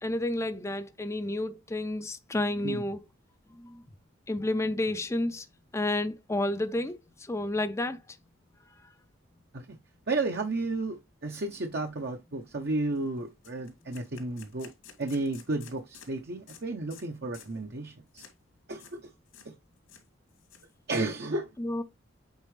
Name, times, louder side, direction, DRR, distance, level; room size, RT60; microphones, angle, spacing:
voice 1, 0.0-3.0 3.6-3.8 4.3-5.5 5.7-8.0 21.6-21.8, left 1 dB, 15° left, 0.4 m, -30 dB
voice 2, 10.1-14.7 15.0-18.3 18.7-19.1 19.4-19.5 20.9-21.5, right 2 dB, 55° right, 0.8 m, -33 dB
sound 1, 12.0-12.2 12.5-12.6 12.9-13.1 13.4-16.1 16.5-16.6 16.9-17.1 17.3-17.6 18.1-18.3 18.7-19.0 19.3-19.5 19.8-20.9, left 7 dB, 85° left, 2.4 m, -52 dB
8.2 x 4.2 x 3.2 m
head